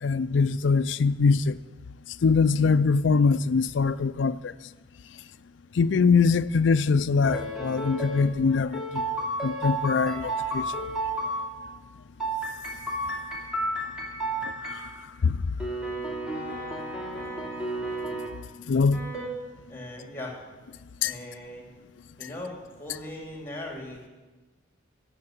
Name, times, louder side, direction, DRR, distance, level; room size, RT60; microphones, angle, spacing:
voice 1, 0.0-1.6 2.2-4.5 5.8-9.1 9.4-10.6 14.7-14.9 15.2-15.4 18.7-19.0 21.0-21.1, left 4 dB, 70° left, 0.4 m, -23 dB
sound 1, 7.2-8.2 8.7-11.4 12.2-14.9 15.6-18.3 18.9-19.3, right 1 dB, 5° right, 2.6 m, -32 dB
voice 2, 19.7-20.4 21.0-21.7 22.2-24.1, left 1 dB, 10° left, 2.7 m, -39 dB
15.5 x 7.8 x 7.3 m
head